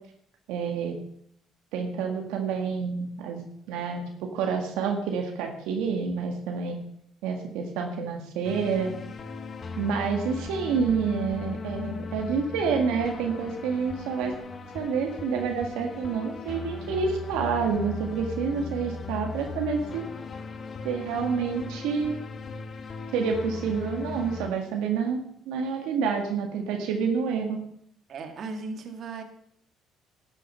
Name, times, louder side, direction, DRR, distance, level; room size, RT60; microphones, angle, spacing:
voice 1, 0.5-1.0 1.7-4.0 4.3-6.8 7.2-9.0 9.8-14.3 14.7-20.0 20.8-22.1 23.1-27.6, right 6 dB, 85° right, 3 dB, 1.8 m, -28 dB
sound 1, 8.4-24.5, left 4 dB, 40° left, 1.4 m, -37 dB
voice 2, 28.1-29.2, right 4 dB, 55° right, 6 dB, 2.1 m, -36 dB
12.5 x 9.0 x 5.6 m, 0.68 s
supercardioid pair, 85°, 0 cm